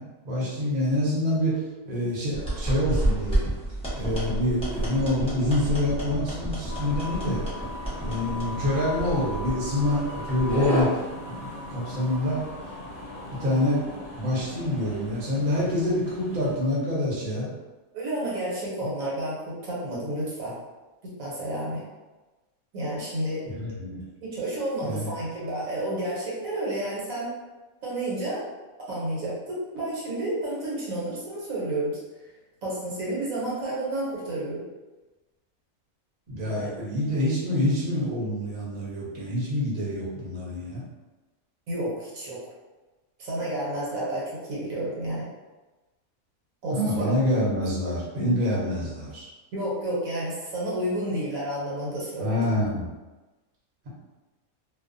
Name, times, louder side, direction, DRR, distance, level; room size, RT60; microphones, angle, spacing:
voice 1, 0.0-3.4 3.9-7.4 8.0-10.9 11.3-12.4 13.4-17.5 23.5-24.1 24.8-25.1 36.3-40.8 46.7-49.3 52.2-52.9, left 1 dB, 45° right, -7 dB, 0.8 m, -26 dB
sound 1, 2.3-10.8, right 1 dB, 5° left, 0.5 m, -30 dB
sound 2, 6.7-16.6, left 2 dB, 65° left, 0.9 m, -39 dB
voice 2, 17.9-20.5 21.2-21.8 22.7-23.4 24.2-27.3 27.8-28.4 28.9-32.0 32.6-34.6 36.6-36.7 41.7-42.4 43.2-45.3 46.6-47.1 49.5-52.4, right 1 dB, 70° right, -7 dB, 1.2 m, -30 dB
2.6 x 2.1 x 2.5 m, 1.2 s
omnidirectional pair, 1.5 m